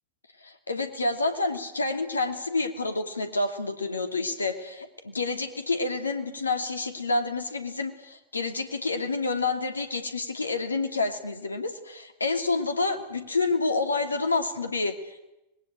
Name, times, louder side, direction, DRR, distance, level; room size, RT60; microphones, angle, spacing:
voice 1, 0.4-15.3, left 3 dB, 75° left, 7 dB, 2.8 m, -28 dB
25.5 x 21.5 x 9.0 m, 0.93 s
figure-of-eight pair, 90°, 0 cm